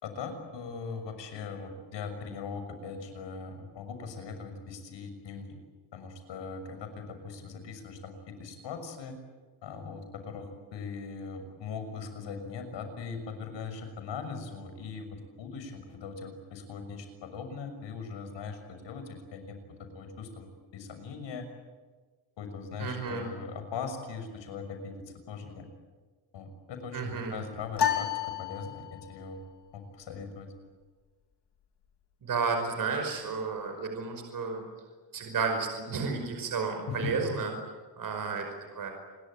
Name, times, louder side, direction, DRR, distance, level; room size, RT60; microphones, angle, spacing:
voice 1, 0.0-5.6 5.9-9.2 9.6-20.5 20.7-21.5 22.4-25.7 26.3-28.1 28.4-29.4 29.7-30.5 36.9-37.3, left 5 dB, 90° left, 7 dB, 6.4 m, -40 dB
voice 2, 22.8-23.2 26.9-27.4 32.2-34.6 35.1-37.5 38.0-38.5 38.7-38.9, right 4 dB, 50° right, 4 dB, 5.3 m, -32 dB
sound 1, 27.8-29.2, left 10 dB, 70° left, 3.1 m, -30 dB
29.0 x 22.0 x 9.0 m, 1.4 s
cardioid pair, 150°, 42 cm